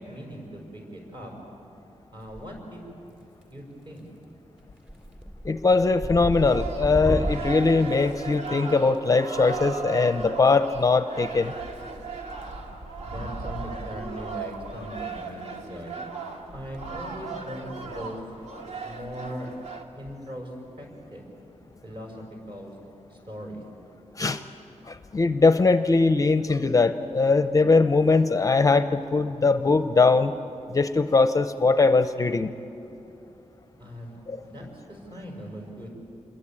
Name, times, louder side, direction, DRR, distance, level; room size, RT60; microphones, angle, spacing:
voice 1, 0.0-1.3 2.1-2.9 3.5-4.1 13.0-16.0 16.5-18.2 18.8-19.5 20.0-20.5 20.8-21.3 21.8-22.7 23.1-23.6 33.8-34.2 34.4-35.9, equal, 45° right, 1 dB, 5.6 m, -39 dB
sound 1, 2.2-2.8 3.1-3.6 4.0-4.2 4.6-9.0 10.3-10.5 11.7-12.5 12.8-13.0 13.6-13.7 13.9-14.0 14.4-14.6 14.8-14.9 16.5-16.8, equal, 10° right, 2.9 m, -34 dB
voice 2, 5.4-11.5 24.2-24.4 24.9-30.3 30.7-32.5 34.3-34.4, left 3 dB, 30° left, 10 dB, 0.6 m, -21 dB
sound 2, 6.4-19.8, right 4 dB, 70° right, 2.1 m, -37 dB
27.0 x 21.5 x 8.8 m, 2.8 s
wide cardioid pair, 180°, 12 cm